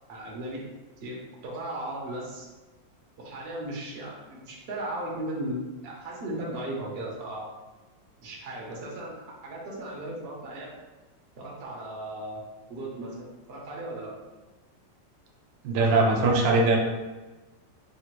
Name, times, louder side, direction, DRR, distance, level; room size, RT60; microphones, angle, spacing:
voice 1, 0.1-0.6 1.0-2.5 3.2-7.5 8.2-9.1 9.4-10.7 11.4-12.4 12.7-13.1 13.5-14.1 15.7-16.7, right 1 dB, 60° right, -4 dB, 0.6 m, -36 dB
voice 2, 15.6-16.8, right 3 dB, 80° right, 0 dB, 1.3 m, -21 dB
3.6 x 2.1 x 2.9 m, 1.2 s
omnidirectional pair, 2.0 m